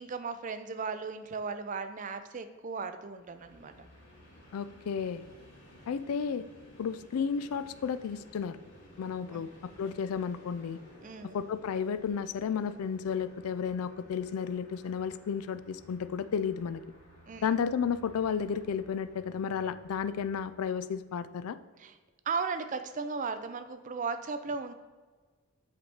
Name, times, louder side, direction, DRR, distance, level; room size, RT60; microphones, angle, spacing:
voice 1, 0.0-3.7 9.3-9.4 11.0-11.4 17.3-17.4 21.8-21.9 22.3-24.7, right 4 dB, 35° right, 9 dB, 0.4 m, -36 dB
Train, 3.1-21.2, equal, 55° left, 1.4 m, -56 dB
voice 2, 4.5-5.3 5.9-6.4 6.8-8.6 9.0-10.8 11.3-16.8 17.4-21.6, left 6 dB, 80° left, 14 dB, 0.3 m, -32 dB
7.9 x 3.3 x 4.3 m, 1.4 s
head